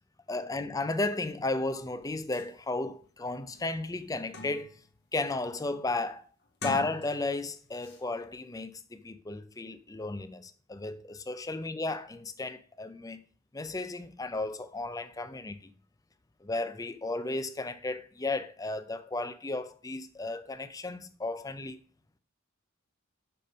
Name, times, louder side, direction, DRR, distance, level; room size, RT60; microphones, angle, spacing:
voice 1, 0.3-4.7 5.1-6.2 6.6-13.2 13.5-15.7 16.4-21.8, left 2 dB, 15° left, 0.5 m, -34 dB
sound 1, 2.0-2.1 2.3-2.5 3.0-3.1 3.5-4.9 5.3-5.6 6.4-7.4 7.8-8.0, left 3 dB, 50° left, 1.4 m, -43 dB
6.8 x 5.2 x 5.1 m
head